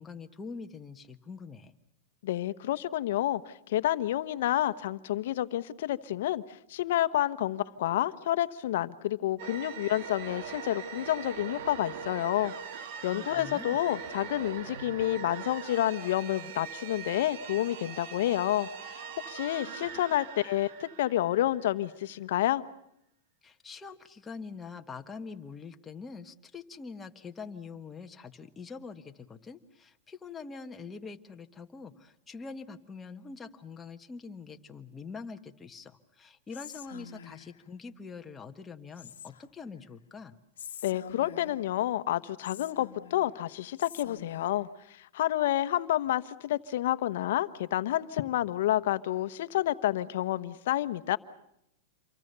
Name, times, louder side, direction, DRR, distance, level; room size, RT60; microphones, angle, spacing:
voice 1, 0.0-1.7 13.1-13.8 23.4-40.4, left 4 dB, 15° left, 1.5 m, -44 dB
voice 2, 2.2-22.6 40.8-51.2, left 13 dB, 70° left, 1.1 m, -29 dB
sound 1, 9.4-21.9, right 7 dB, 55° right, 1.8 m, -42 dB
Whispering, 36.5-37.6 39.0-39.6 40.6-41.7 42.4-43.3 43.8-44.6, left 9 dB, 85° left, 1.3 m, -46 dB
28.0 x 23.5 x 6.9 m
hypercardioid pair, 135°, 0 cm